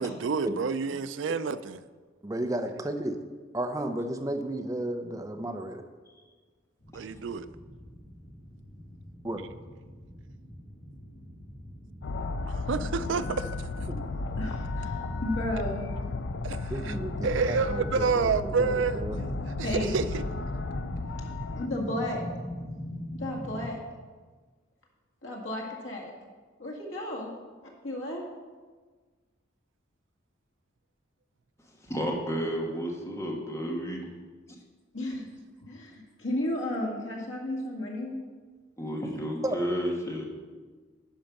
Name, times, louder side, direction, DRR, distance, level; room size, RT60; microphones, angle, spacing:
voice 1, 0.0-1.8 6.9-7.5 12.5-13.5 16.4-16.9 17.2-19.0 19.6-20.2, right 5 dB, 75° right, 12 dB, 0.4 m, -29 dB
voice 2, 2.2-3.2 3.5-5.8 9.2-9.4 13.9-14.0 16.7-19.2 39.4-39.6, right 1 dB, 15° right, 6 dB, 0.6 m, -33 dB
sound 1, 6.8-23.7, equal, 45° left, 2.6 m, -42 dB
sound 2, 12.0-21.7, left 3 dB, 65° left, 0.5 m, -34 dB
voice 3, 14.4-15.9 19.6-20.0 21.5-22.2 23.1-23.8 25.2-26.1 26.6-27.3 27.6-28.2 34.9-35.3 35.7-38.2, left 1 dB, 85° left, -2 dB, 2.0 m, -33 dB
voice 4, 31.8-34.1 38.8-40.3, equal, 15° left, 0 dB, 1.4 m, -32 dB
10.5 x 5.4 x 5.9 m, 1.4 s
head